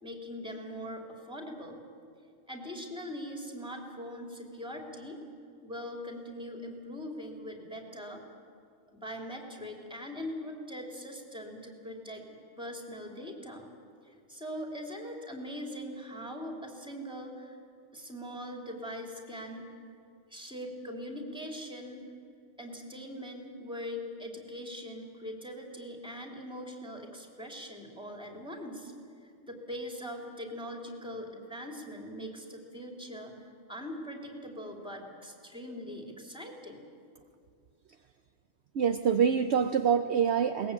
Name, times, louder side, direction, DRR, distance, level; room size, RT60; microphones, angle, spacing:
voice 1, 0.0-1.8 2.5-5.2 5.6-8.2 8.9-12.2 12.6-13.7 14.0-17.5 17.9-19.7 20.3-22.0 22.6-28.9 29.2-36.8, equal, 5° right, 1 dB, 3.3 m, -41 dB
voice 2, 38.7-40.7, right 7 dB, 60° right, 7 dB, 1.0 m, -26 dB
21.5 x 20.0 x 8.7 m, 2.4 s
omnidirectional pair, 1.3 m